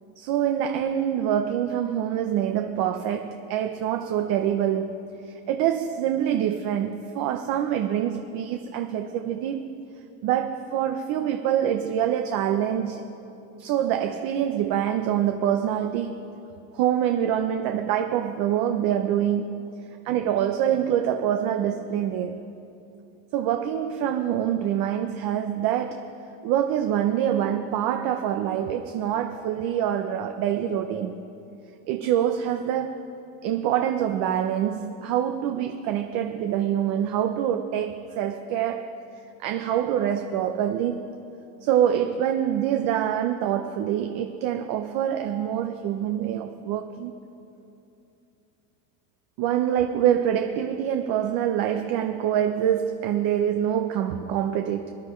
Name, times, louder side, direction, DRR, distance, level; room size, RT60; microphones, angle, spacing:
voice 1, 0.2-5.0 5.2-9.6 10.2-13.1 13.6-16.2 16.7-19.6 20.0-22.5 23.3-26.1 26.4-31.2 31.9-33.0 33.4-38.9 39.4-41.2 41.6-47.1 49.4-54.9, right 10 dB, 60° right, 0.8 m, -25 dB
25.0 x 10.5 x 3.2 m
cardioid pair, 145°, 39 cm